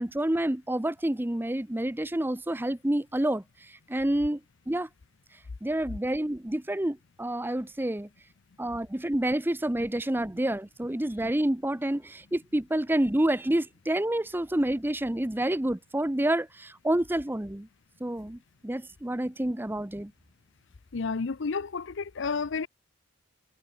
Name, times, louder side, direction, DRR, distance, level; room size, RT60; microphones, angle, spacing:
voice 1, 0.0-3.4 3.9-4.4 4.7-4.9 5.6-8.1 8.6-17.7 18.0-20.1, right 1 dB, 10° right, 0.7 m, -28 dB
voice 2, 20.9-22.7, left 4 dB, 60° left, 0.6 m, -31 dB
head